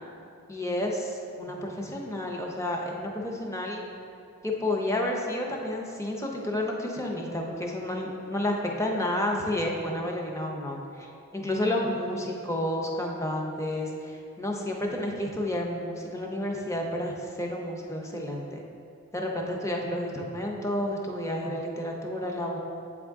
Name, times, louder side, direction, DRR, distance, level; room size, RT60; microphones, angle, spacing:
voice 1, 0.5-3.8 4.4-18.6 19.1-22.6, left 1 dB, 15° left, 0 dB, 0.5 m, -31 dB
8.0 x 3.6 x 3.5 m, 2.5 s
head